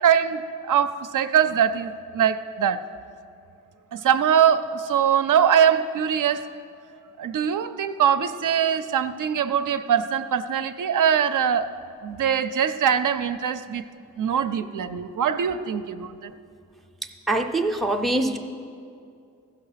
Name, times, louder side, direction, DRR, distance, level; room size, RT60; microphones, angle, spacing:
voice 1, 0.0-2.8 3.9-6.5 7.2-11.7 12.0-13.8 14.2-16.3, right 8 dB, 75° right, 11 dB, 0.5 m, -22 dB
voice 2, 17.3-18.4, right 2 dB, ahead, 4 dB, 0.4 m, -23 dB
15.0 x 6.0 x 5.7 m, 2.4 s
wide cardioid pair, 150°, 32 cm